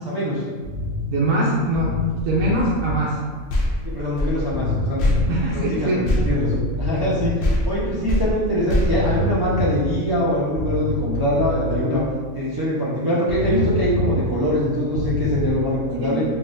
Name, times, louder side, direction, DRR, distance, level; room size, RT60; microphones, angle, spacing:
voice 1, 0.0-0.4 3.8-12.0 12.3-16.2, equal, 35° right, -9 dB, 0.3 m, -23 dB
sound 1, 0.6-1.1 1.7-3.0 4.5-5.5 6.1-7.4 8.9-10.1 10.5-11.8 13.3-14.5 14.9-15.5, left 2 dB, 35° left, 0.4 m, -26 dB
voice 2, 1.1-3.2 5.3-6.0 16.0-16.2, right 1 dB, 85° right, -5 dB, 1.0 m, -22 dB
sound 2, 3.5-7.1 7.4-9.9, left 1 dB, 65° left, 0.7 m, -24 dB
3.7 x 2.3 x 2.5 m, 1.5 s
omnidirectional pair, 1.4 m